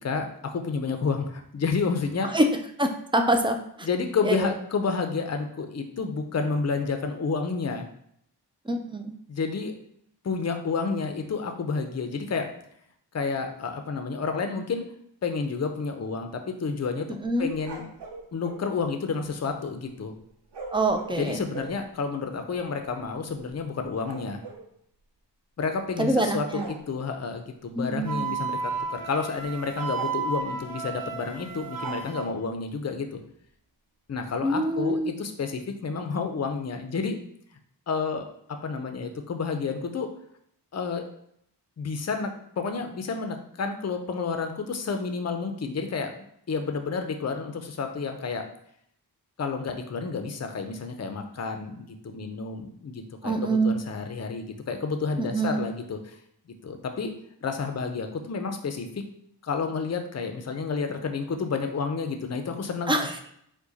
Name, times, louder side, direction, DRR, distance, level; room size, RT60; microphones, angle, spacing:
voice 1, 0.0-2.4 3.8-7.9 9.3-9.7 10.2-12.5 13.1-14.8 15.2-17.8 18.3-20.1 21.2-24.4 25.6-33.2 34.1-37.2 37.9-40.1 40.7-41.1 41.8-46.1 46.5-48.4 49.4-56.1 56.6-57.1 57.4-59.0 59.4-62.9, left 4 dB, 40° left, 6 dB, 0.5 m, -30 dB
voice 2, 2.3-3.6 4.2-4.5 8.7-9.1 17.2-17.5 20.7-21.4 26.0-26.7 27.7-28.3 34.4-35.1 53.2-53.7 55.2-55.6 62.9-63.3, right 1 dB, 15° right, 5 dB, 0.3 m, -25 dB
sound 1, 17.4-18.6 20.5-21.8 22.5-22.6 22.8-23.0 23.3-24.7 25.8-26.1 26.5-26.8 28.2-28.4 28.8-28.9 29.4-29.6 29.9-30.4 31.8-32.4, right 3 dB, 85° right, 0.8 m, -41 dB
Wind instrument woodwind instrument, 28.1-32.3, right 5 dB, 50° right, 0.8 m, -32 dB
4.8 x 2.2 x 4.0 m, 0.70 s
wide cardioid pair, 105°, 41 cm